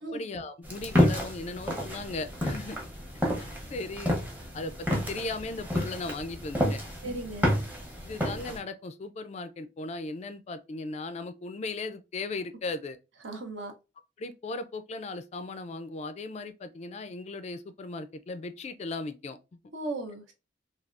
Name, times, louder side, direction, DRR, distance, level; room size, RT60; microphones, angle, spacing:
voice 1, 0.1-2.8 3.7-4.2 4.5-7.2 8.0-13.0 14.2-19.4, left 3 dB, 35° left, 0.3 m, -37 dB
sound 1, 0.6-8.6, left 1 dB, 10° right, 0.8 m, -30 dB
voice 2, 7.0-7.6 13.2-13.7 19.7-20.3, right 2 dB, 70° right, 0.8 m, -36 dB
3.4 x 2.3 x 2.4 m
head